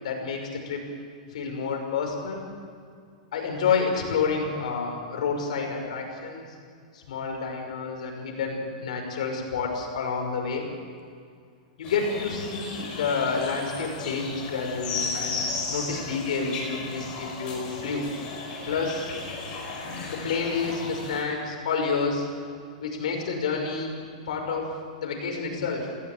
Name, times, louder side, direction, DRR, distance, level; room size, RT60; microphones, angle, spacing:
voice 1, 0.0-0.8 1.3-2.5 3.3-6.5 6.9-10.7 11.8-18.1 18.7-19.1 20.1-22.3 22.8-23.9 24.3-24.7 25.0-25.9, left 5 dB, 60° left, 1 dB, 5.7 m, -29 dB
sound 1, 11.8-21.2, left 3 dB, 20° left, 5.1 m, -35 dB
20.5 x 16.0 x 8.8 m, 2.2 s
supercardioid pair, 175°, 4 cm